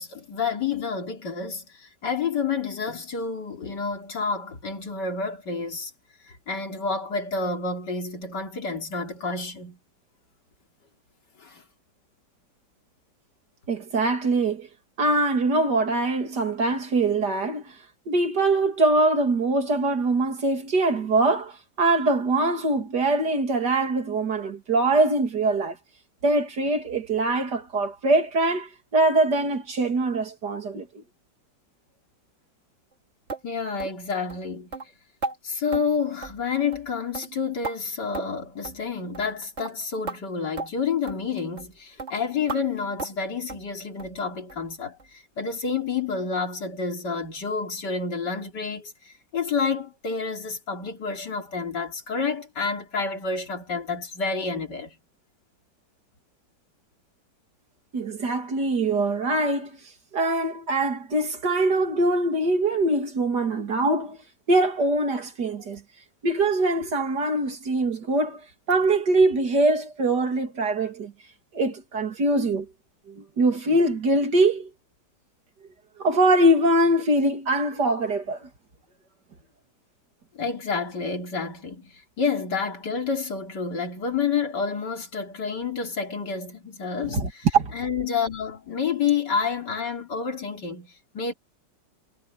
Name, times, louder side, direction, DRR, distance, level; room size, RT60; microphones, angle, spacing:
voice 1, 0.0-5.9 6.3-9.8 11.4-11.6 33.4-34.7 35.4-55.0 80.3-87.5 87.7-91.3, left 5 dB, 70° left, 3.7 m, -29 dB
voice 2, 13.7-14.7 15.0-17.8 18.1-25.8 26.2-31.0 57.9-59.8 60.1-64.2 64.5-65.8 66.2-68.4 68.7-71.1 71.5-72.7 73.1-74.7 76.0-78.5 87.0-87.7, right 2 dB, 65° right, 3.2 m, -23 dB
sound 1, 33.3-33.4 33.8-34.0 34.3-34.4 34.7-34.9 35.2-35.4 35.7-35.9 36.2-36.5 36.7-36.9 37.1-37.8 38.1-38.4 38.6-38.8 39.1-39.3 39.6-39.7 40.1-40.2 40.6-40.7 41.1-41.2 41.6-41.7 42.0-42.1 42.5-42.6 43.0-43.2 43.5-43.7 44.0-44.2 44.5-44.6 45.0-45.1 45.5-45.6, right 3 dB, 40° right, 2.5 m, -34 dB
omnidirectional pair, 1.9 m